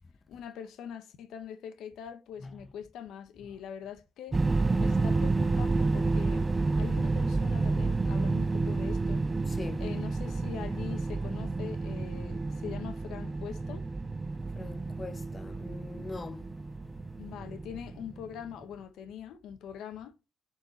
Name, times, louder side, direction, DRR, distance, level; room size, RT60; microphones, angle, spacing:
voice 1, 0.3-4.4 4.8-6.5 6.7-9.3 9.8-13.9 17.2-20.2, left 8 dB, 80° left, 1.2 m, -43 dB
sound 1, 4.3-18.3, right 3 dB, 25° right, 0.4 m, -30 dB
voice 2, 9.5-9.8 14.4-16.5, left 3 dB, 25° left, 0.8 m, -42 dB
7.2 x 4.5 x 5.4 m
cardioid pair, 90°, 0 cm